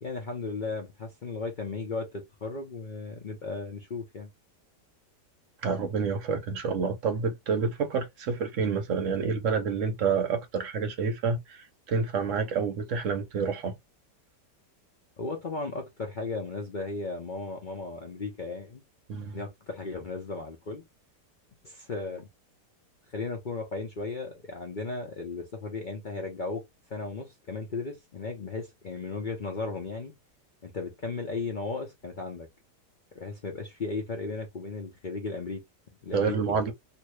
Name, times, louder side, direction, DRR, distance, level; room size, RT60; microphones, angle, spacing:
voice 1, 0.0-4.3 15.2-18.8 19.3-20.8 21.6-22.3 23.1-26.6 26.9-30.1 30.6-32.5 33.1-35.6 36.0-36.6, left 3 dB, 70° left, 0.4 m, -35 dB
voice 2, 5.6-13.7 19.1-19.4 36.1-36.7, right 5 dB, 60° right, 0.9 m, -28 dB
2.9 x 2.6 x 3.0 m
omnidirectional pair, 1.8 m